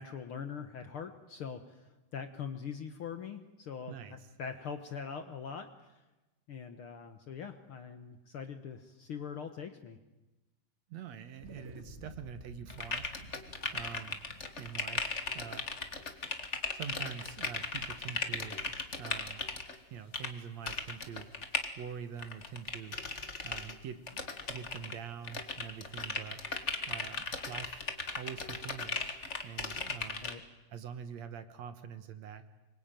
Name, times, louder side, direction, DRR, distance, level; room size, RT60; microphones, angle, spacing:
voice 1, 0.0-6.0 6.5-10.0 30.2-30.4, left 6 dB, 55° left, 8 dB, 1.7 m, -43 dB
voice 2, 10.9-13.1 13.7-14.2 14.6-15.7 16.7-19.5 19.9-21.3 21.8-23.0 23.4-24.0 24.5-26.4 26.9-27.8 28.2-29.2 29.4-30.3 30.7-32.5, right 7 dB, 65° right, 10 dB, 2.4 m, -45 dB
sound 1, 11.4-16.1, right 1 dB, 20° right, 2.4 m, -52 dB
sound 2, 12.7-19.8 20.1-20.3 20.6-21.7 22.2-23.7 24.1-24.9 25.2-30.3, left 4 dB, 30° left, 1.3 m, -37 dB
25.0 x 23.0 x 9.2 m, 1.1 s
omnidirectional pair, 3.6 m